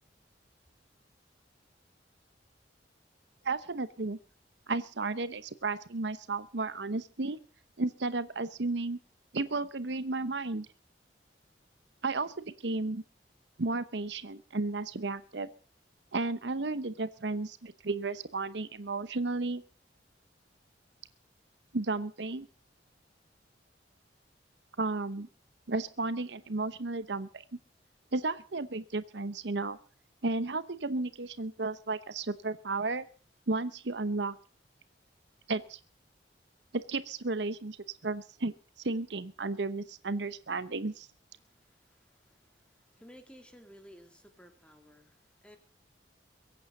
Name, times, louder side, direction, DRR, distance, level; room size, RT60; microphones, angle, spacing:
voice 1, 3.4-4.2 4.7-7.4 7.8-9.0 9.3-10.7 12.0-13.0 13.6-15.5 16.1-19.6 21.7-22.5 24.8-25.3 25.7-27.4 28.1-29.8 30.2-33.1 33.5-34.3 35.5-35.8 36.7-37.8 38.0-41.1, right 3 dB, 75° right, 14 dB, 0.9 m, -33 dB
voice 2, 41.4-45.6, equal, 5° left, 6 dB, 2.7 m, -56 dB
22.5 x 8.8 x 6.6 m, 0.40 s
head